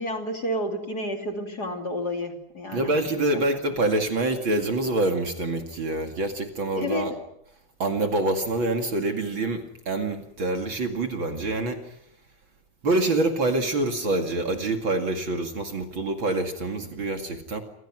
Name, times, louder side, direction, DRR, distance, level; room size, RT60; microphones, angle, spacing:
voice 1, 0.0-2.9 6.8-7.1, left 1 dB, 35° left, 4 dB, 3.1 m, -30 dB
voice 2, 2.7-7.1 7.8-11.9 12.8-17.6, right 2 dB, 45° right, 5 dB, 2.9 m, -26 dB
28.5 x 27.0 x 6.2 m, 0.74 s
omnidirectional pair, 3.3 m